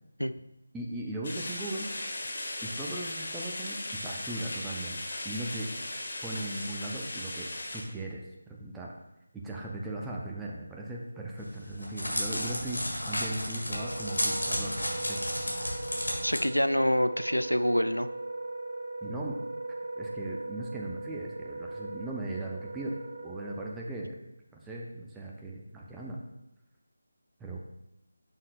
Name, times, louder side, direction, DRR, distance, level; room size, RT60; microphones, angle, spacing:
voice 1, 0.7-1.9 2.6-5.0 5.2-5.7 6.2-8.9 9.3-15.2 19.0-19.4 20.0-22.9 23.2-24.2 24.6-26.2 27.4-27.6, right 1 dB, 5° right, -3 dB, 0.4 m, -38 dB
sound 1, 1.2-7.8, left 1 dB, 45° left, 1.2 m, -37 dB
Crackle, 11.4-16.4, left 1 dB, 70° left, 1.7 m, -32 dB
Wind instrument woodwind instrument, 13.7-23.8, right 2 dB, 45° right, 0.6 m, -39 dB
voice 2, 16.2-18.1, equal, 90° left, 12 dB, 0.3 m, -26 dB
7.1 x 6.4 x 2.2 m, 0.88 s
figure-of-eight pair, 160°, 0 cm